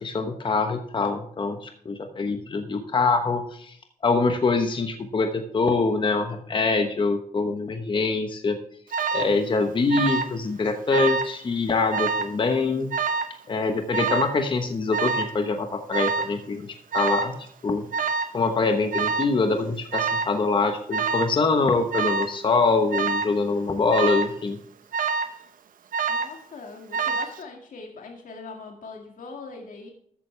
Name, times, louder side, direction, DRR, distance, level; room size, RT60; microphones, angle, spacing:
voice 1, 0.0-3.7 4.0-8.6 9.1-12.9 13.5-16.7 16.9-17.8 18.3-24.6, left 3 dB, 35° left, 6 dB, 1.0 m, -24 dB
Alarm, 8.9-9.3 9.9-10.4 10.7-11.3 11.9-12.3 12.9-13.4 13.9-14.4 14.9-15.4 15.9-16.3 16.9-17.3 17.9-18.3 18.9-19.4 19.9-20.4 20.9-21.3 21.9-22.3 22.9-23.4 23.9-24.3 24.9-25.4 25.9-26.4 26.9-27.4, right 5 dB, 80° right, 0.9 m, -26 dB
voice 2, 26.1-29.9, left 3 dB, 75° left, 2 dB, 2.1 m, -41 dB
13.5 x 9.2 x 3.3 m, 0.66 s
wide cardioid pair, 160°, 14 cm